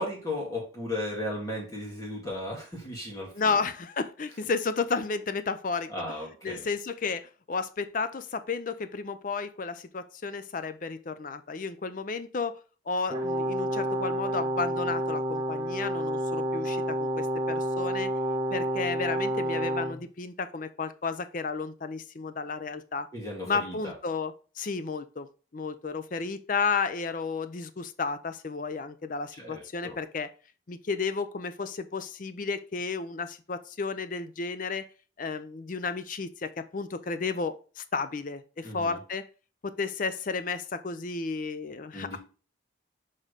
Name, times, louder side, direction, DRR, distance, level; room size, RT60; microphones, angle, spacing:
voice 1, 0.0-3.6 5.9-6.6 23.1-23.9 29.4-30.0 38.6-39.0 41.9-42.2, left 1 dB, 20° left, -4 dB, 1.9 m, -35 dB
voice 2, 3.3-5.9 6.4-18.1 18.5-23.1 23.5-25.3 25.5-30.3 30.7-34.9 35.2-39.3 39.6-42.2, left 4 dB, 45° left, 12 dB, 0.5 m, -32 dB
Brass instrument, 13.1-20.0, equal, 20° right, 1.4 m, -29 dB
6.4 x 3.7 x 5.1 m, 0.36 s
head